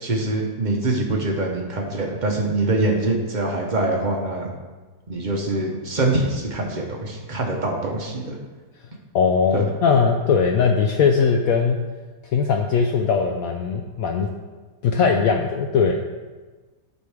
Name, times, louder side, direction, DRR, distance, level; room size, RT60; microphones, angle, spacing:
voice 1, 0.0-4.5 5.1-8.4 9.5-9.6, right 2 dB, 40° right, 0 dB, 0.6 m, -24 dB
voice 2, 9.1-11.8 12.2-14.3 14.8-16.0, left 5 dB, 75° left, 3 dB, 0.8 m, -20 dB
9.9 x 5.4 x 3.4 m, 1.3 s
omnidirectional pair, 1.9 m